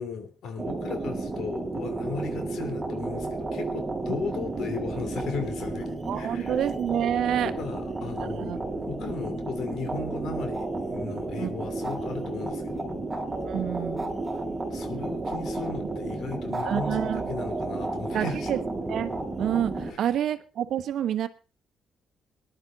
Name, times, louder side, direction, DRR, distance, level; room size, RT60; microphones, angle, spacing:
voice 1, 0.0-5.9 6.2-6.5 7.4-13.1 14.7-18.5 19.9-20.1, left 4 dB, 75° left, 8 dB, 3.1 m, -36 dB
sound 1, 0.6-19.9, right 2 dB, 20° right, 4.2 m, -32 dB
voice 2, 6.1-7.5 8.2-8.6 11.4-11.5 13.5-14.1 16.6-17.4 18.1-18.6 18.9-21.3, right 10 dB, 75° right, 10 dB, 1.2 m, -28 dB
19.5 x 11.0 x 4.0 m, 0.34 s
cardioid pair, 90°, 0 cm